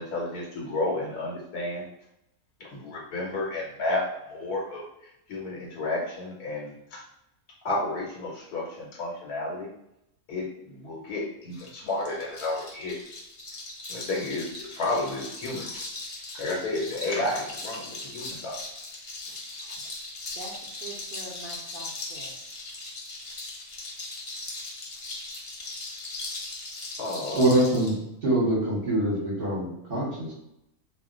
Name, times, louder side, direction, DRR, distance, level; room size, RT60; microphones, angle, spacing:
voice 1, 0.0-1.9 2.6-4.8 5.3-7.0 7.6-9.7 10.3-13.0 13.9-15.8 16.3-18.6 27.0-27.4, left 2 dB, 90° left, -3 dB, 1.1 m, -31 dB
sound 1, 11.5-27.9, left 2 dB, 50° left, 0.8 m, -39 dB
voice 2, 20.3-22.4, right 2 dB, 75° right, -4 dB, 0.4 m, -43 dB
voice 3, 27.4-27.9 28.2-30.3, right 1 dB, 45° right, -6 dB, 0.9 m, -24 dB
2.4 x 2.1 x 3.6 m, 0.84 s
omnidirectional pair, 1.6 m